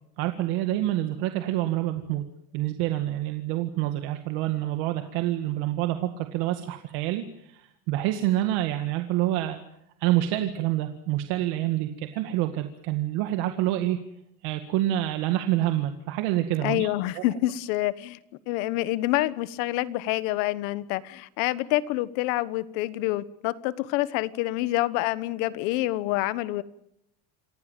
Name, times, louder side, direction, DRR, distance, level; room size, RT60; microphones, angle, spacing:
voice 1, 0.2-2.2 2.5-9.6 10.0-14.0 14.4-16.9 17.1-17.2, right 14 dB, 75° right, 7 dB, 2.0 m, -27 dB
voice 2, 16.6-18.2 18.5-26.6, left 17 dB, 85° left, 16 dB, 1.3 m, -27 dB
28.0 x 16.0 x 9.2 m, 0.79 s
cardioid pair, 170°, 40 cm